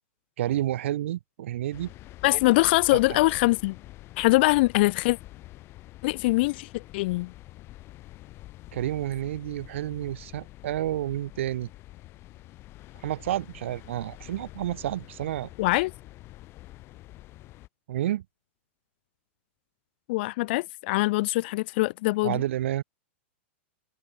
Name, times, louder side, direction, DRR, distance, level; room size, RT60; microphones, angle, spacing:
voice 1, 0.4-1.9 8.7-11.7 13.0-15.5 15.7-15.8 17.9-18.2 22.2-22.8, right 13 dB, 75° right, 1.3 m, -30 dB
sound 1, 1.7-17.7, left 17 dB, 35° left, 2.7 m, -47 dB
voice 2, 2.2-3.8 4.2-5.2 6.0-7.3 15.6-15.9 20.1-22.4, left 21 dB, 55° left, 0.3 m, -23 dB
hypercardioid pair, 130°, 7 cm